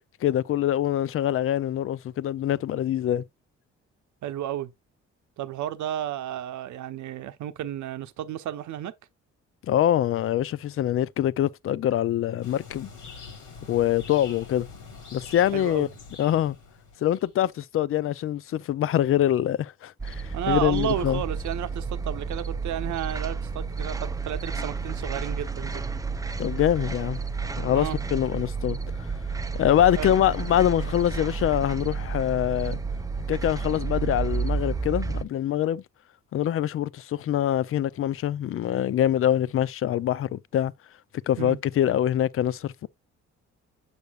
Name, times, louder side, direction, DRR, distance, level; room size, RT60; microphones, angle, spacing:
voice 1, 0.2-3.2 9.7-12.9 13.7-14.7 15.1-15.9 16.2-16.6 17.0-21.2 26.4-27.2 27.6-29.1 29.6-32.8 33.3-35.8 36.3-40.7 41.3-42.9, left 11 dB, 45° left, 0.4 m, -24 dB
voice 2, 4.2-4.7 5.4-8.9 15.5-15.9 20.3-25.8 27.7-28.0 30.0-30.1 41.4-41.6, right 11 dB, 70° right, 0.8 m, -32 dB
sound 1, 12.4-17.3, left 5 dB, 85° left, 2.6 m, -44 dB
sound 2, 20.0-35.2, right 5 dB, 10° right, 0.6 m, -31 dB
6.8 x 6.3 x 2.3 m
cardioid pair, 90°, 30 cm